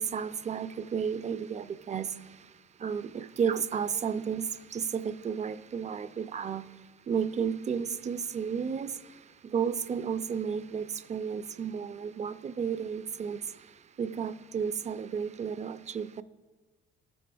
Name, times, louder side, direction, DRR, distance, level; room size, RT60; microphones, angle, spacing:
voice 1, 0.0-2.2 2.8-6.7 7.1-9.0 9.4-13.4 14.0-16.2, right 7 dB, 35° right, 0.4 m, -32 dB
14.0 x 5.2 x 3.4 m
cardioid pair, 90°, 20 cm